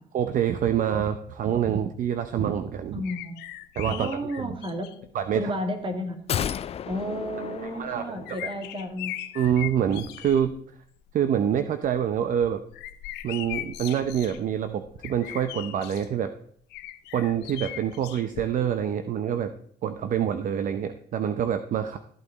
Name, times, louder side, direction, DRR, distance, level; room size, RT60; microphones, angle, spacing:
voice 1, 0.1-3.0 3.8-4.5 5.1-5.4 7.6-8.5 9.3-10.5 11.1-12.6 13.2-16.3 17.1-19.5 19.8-22.0, right 9 dB, 50° right, 9 dB, 0.7 m, -26 dB
voice 2, 2.9-3.5 3.9-4.9 5.3-6.2 6.9-9.1, equal, 30° right, 6 dB, 2.1 m, -32 dB
sound 1, 3.0-5.1 6.0-6.1 7.6-10.5 10.9-11.3 11.7-16.1 16.7-18.9 19.1-19.2, left 14 dB, 90° left, 0.7 m, -39 dB
sound 2, 6.3-8.6 8.9-9.0, left 9 dB, 35° left, 0.4 m, -33 dB
14.0 x 8.4 x 4.0 m, 0.62 s
cardioid pair, 110°, 17 cm